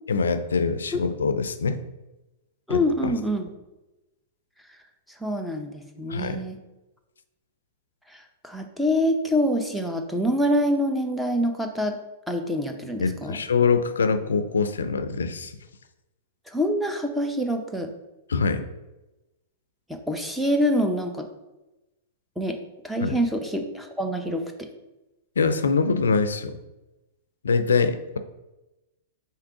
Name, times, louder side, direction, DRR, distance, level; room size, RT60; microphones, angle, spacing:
voice 1, 0.1-1.8 2.7-3.1 6.1-6.4 13.0-15.5 18.3-18.7 23.0-23.2 25.4-26.6 27.4-28.2, left 5 dB, 85° left, 10 dB, 0.3 m, -24 dB
voice 2, 2.7-3.5 5.2-6.6 8.1-12.0 12.3-13.4 16.5-17.9 19.9-21.3 22.4-22.6 22.8-24.7, equal, 5° right, 4 dB, 0.6 m, -26 dB
3.6 x 2.8 x 4.7 m, 1.0 s
hypercardioid pair, 115°, 0 cm